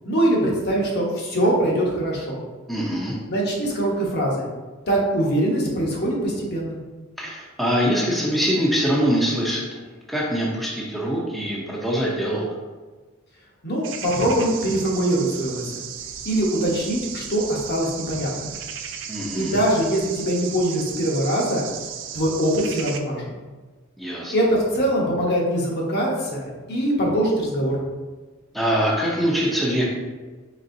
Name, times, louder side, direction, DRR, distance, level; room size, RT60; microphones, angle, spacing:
voice 1, 0.0-2.4 3.3-4.5 4.9-6.8 13.6-15.8 16.2-18.5 19.3-21.7 22.1-23.3 24.3-27.8, right 1 dB, 50° left, -3 dB, 0.9 m, -23 dB
voice 2, 2.7-3.1 7.2-12.5 19.1-19.6 24.0-24.3 28.5-29.8, equal, ahead, -5 dB, 0.6 m, -23 dB
sound 1, 13.8-23.0, right 8 dB, 60° right, 0.4 m, -35 dB
4.0 x 3.5 x 2.6 m, 1.3 s
head